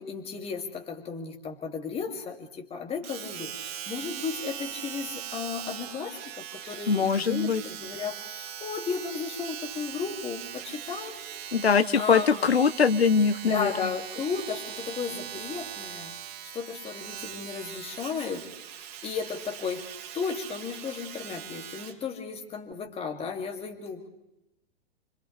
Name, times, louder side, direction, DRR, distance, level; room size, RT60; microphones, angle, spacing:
voice 1, 0.0-11.2 11.9-12.5 13.4-16.1 16.5-18.5 19.0-19.8 20.1-24.2, left 5 dB, 20° left, 4 dB, 2.6 m, -34 dB
Domestic sounds home sounds, 3.0-22.0 22.7-22.8, right 10 dB, 45° right, 2.9 m, -40 dB
voice 2, 6.9-7.6 11.5-13.7, left 6 dB, 80° left, 14 dB, 0.9 m, -22 dB
29.5 x 26.0 x 3.4 m, 0.87 s
figure-of-eight pair, 105°, 31 cm